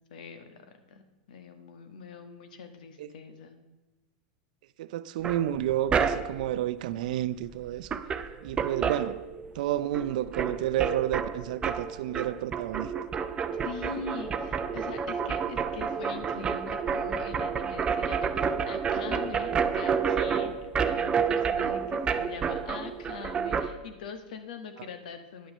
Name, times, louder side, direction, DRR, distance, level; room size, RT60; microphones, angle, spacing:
voice 1, 0.1-3.6 13.6-25.5, left 5 dB, 75° left, 1.3 m, -43 dB
voice 2, 4.8-8.0 8.4-9.2 9.6-12.9, right 12 dB, 70° right, 0.5 m, -30 dB
sound 1, 5.2-6.5 7.5-7.6 7.8-9.7 9.9-23.7, right 6 dB, 20° right, 0.6 m, -30 dB
9.9 x 6.0 x 6.6 m
hypercardioid pair, 120°, 4 cm